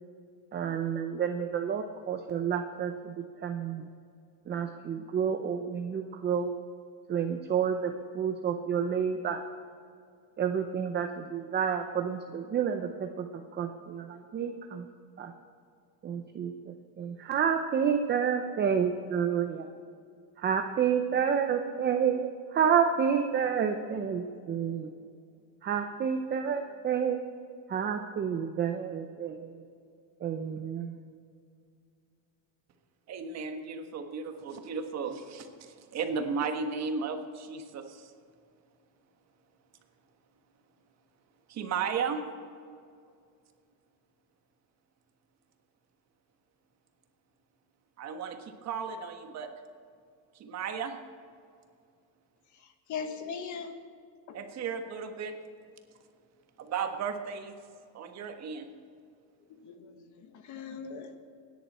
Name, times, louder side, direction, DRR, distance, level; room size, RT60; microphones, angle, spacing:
voice 1, 0.5-3.1 3.4-3.9 4.5-6.5 7.1-9.4 10.4-13.3 13.5-14.9 15.2-15.3 16.0-19.6 20.4-24.9 25.6-27.2 27.7-29.5 30.2-31.0, right 7 dB, 25° right, 6 dB, 0.7 m, -29 dB
voice 2, 33.1-38.1 41.5-42.2 48.0-49.5 50.3-51.0 54.3-55.3 56.6-57.6 57.9-58.7, right 5 dB, 40° right, 6 dB, 1.5 m, -35 dB
voice 3, 52.9-53.8 54.3-54.4 59.5-61.2, left 6 dB, 45° left, 7 dB, 1.6 m, -39 dB
25.5 x 10.5 x 4.3 m, 2.3 s
cardioid pair, 165°, 40 cm